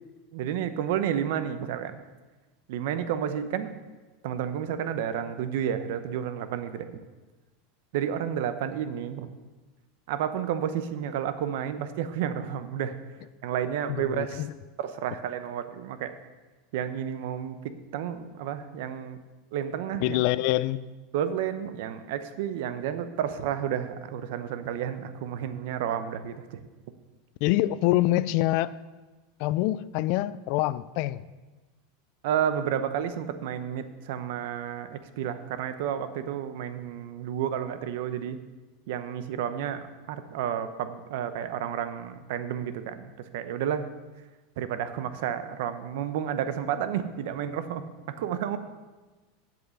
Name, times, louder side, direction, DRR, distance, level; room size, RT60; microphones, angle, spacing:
voice 1, 0.3-2.0 2.7-3.8 4.2-7.0 7.9-9.3 10.1-13.0 13.4-14.4 14.8-16.2 16.7-19.2 19.5-20.2 21.1-26.6 32.2-38.4 38.9-43.9 44.6-48.6, right 9 dB, 55° right, 11 dB, 0.8 m, -31 dB
voice 2, 14.0-14.5 20.0-20.8 27.4-28.7 29.4-31.2, left 16 dB, 45° left, 17 dB, 0.3 m, -25 dB
8.1 x 7.9 x 7.2 m, 1.2 s
supercardioid pair, 175°, 0 cm